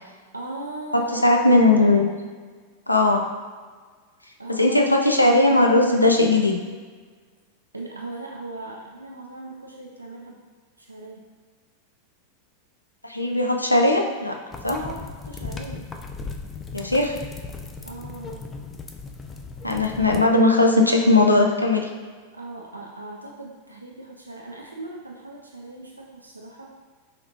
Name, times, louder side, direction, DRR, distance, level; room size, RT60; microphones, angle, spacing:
voice 1, 0.3-2.0 4.4-4.9 7.7-10.4 10.8-11.3 14.6-15.9 17.8-18.5 22.3-26.8, right 2 dB, 85° right, -1 dB, 0.3 m, -38 dB
voice 2, 0.9-2.1 2.9-3.2 4.5-6.6 13.0-14.4 14.6-14.8 16.7-17.1 19.6-21.9, left 2 dB, 85° left, 2 dB, 0.4 m, -18 dB
sound 1, 14.5-20.2, left 4 dB, 20° left, 0.3 m, -37 dB
5.9 x 2.6 x 2.6 m, 1.5 s
figure-of-eight pair, 90°, 0 cm